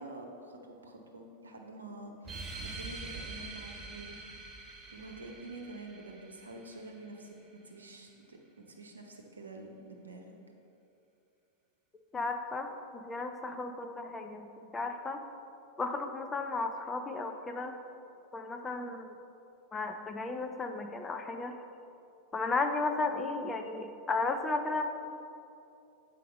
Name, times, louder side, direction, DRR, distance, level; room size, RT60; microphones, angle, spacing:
voice 1, 0.0-4.2 4.9-7.3 7.7-8.4 8.8-10.3, right 2 dB, 75° right, 2 dB, 0.8 m, -47 dB
sound 1, 2.2-7.3, right 3 dB, 25° right, 0.9 m, -45 dB
voice 2, 12.1-15.2 15.8-17.8 18.3-19.1 19.7-21.6 22.3-24.8, left 3 dB, 15° left, 5 dB, 0.5 m, -34 dB
8.4 x 5.1 x 4.1 m, 2.7 s
figure-of-eight pair, 90°, 0 cm